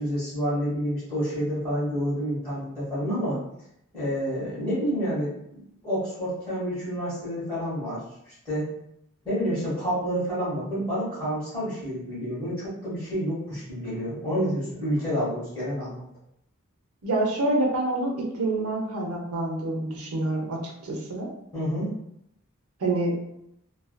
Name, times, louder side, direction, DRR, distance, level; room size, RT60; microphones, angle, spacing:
voice 1, 0.0-3.4 3.9-8.7 9.2-16.1 21.5-21.9, equal, 15° left, -11 dB, 1.2 m, -29 dB
voice 2, 17.0-21.3 22.8-23.2, right 2 dB, 85° right, -1 dB, 0.6 m, -27 dB
2.4 x 2.3 x 2.2 m, 0.77 s
head